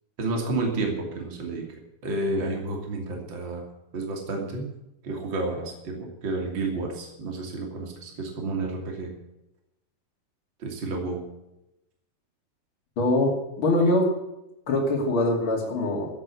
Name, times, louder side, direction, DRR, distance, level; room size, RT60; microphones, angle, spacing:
voice 1, 0.2-3.7 3.9-4.6 5.0-9.1 10.6-11.2, right 2 dB, 40° right, 1 dB, 3.3 m, -30 dB
voice 2, 13.0-14.2 14.7-16.1, left 1 dB, 45° left, -2 dB, 3.3 m, -23 dB
14.5 x 8.4 x 8.4 m, 0.90 s
omnidirectional pair, 3.5 m